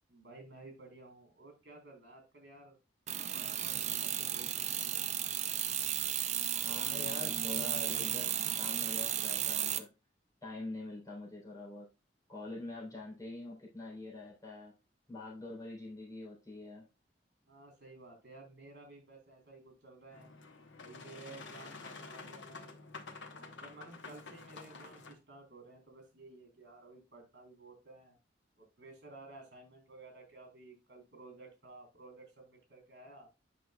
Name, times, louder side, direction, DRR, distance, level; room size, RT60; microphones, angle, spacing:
voice 1, 0.1-2.8 3.3-5.0 17.5-20.3 20.8-22.7 23.3-28.2 28.6-33.3, right 2 dB, 70° right, 3 dB, 3.7 m, -54 dB
sound 1, 3.1-9.8, right 10 dB, 40° right, 0.5 m, -34 dB
voice 2, 6.5-9.9 10.4-11.9 12.3-14.7 15.1-16.9, left 2 dB, 20° left, -5 dB, 3.7 m, -45 dB
Boat Water vehicle, 20.1-25.1, left 4 dB, 90° left, 1.2 m, -49 dB
8.7 x 6.1 x 2.3 m, 0.27 s
head